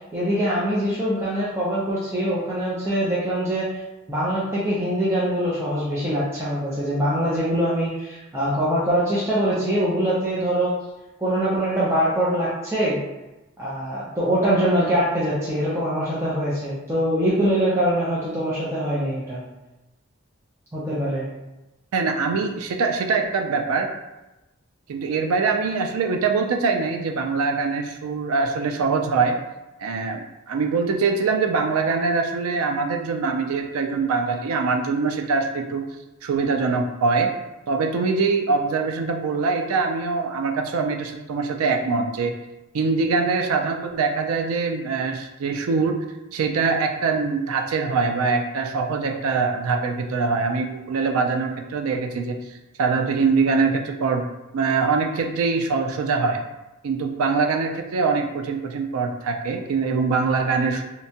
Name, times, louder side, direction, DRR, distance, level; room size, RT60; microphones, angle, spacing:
voice 1, 0.1-3.8 4.1-10.8 11.2-13.0 13.6-19.4 20.7-21.3, equal, 10° right, -9 dB, 0.5 m, -23 dB
voice 2, 21.9-23.9 24.9-29.3 29.8-30.2 30.5-35.8 36.2-37.3 37.7-42.3 42.7-46.0 46.3-54.3 54.5-56.4 56.8-60.9, right 4 dB, 85° right, 4 dB, 0.4 m, -23 dB
2.8 x 2.2 x 2.7 m, 1.0 s
head